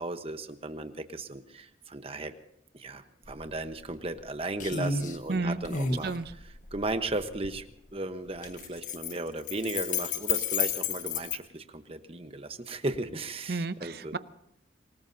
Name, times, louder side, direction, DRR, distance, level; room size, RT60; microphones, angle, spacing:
voice 1, 0.0-2.3 2.7-7.6 7.9-14.1, right 2 dB, 30° right, 8 dB, 1.1 m, -36 dB
sound 1, 3.2-3.4 3.8-4.3 4.6-5.2 5.6-7.6 8.4-11.4, left 6 dB, 45° left, 1.4 m, -32 dB
voice 2, 5.3-5.6 6.0-6.3 13.5-14.2, right 3 dB, 55° right, 13 dB, 0.7 m, -31 dB
27.0 x 19.0 x 2.8 m, 0.78 s
head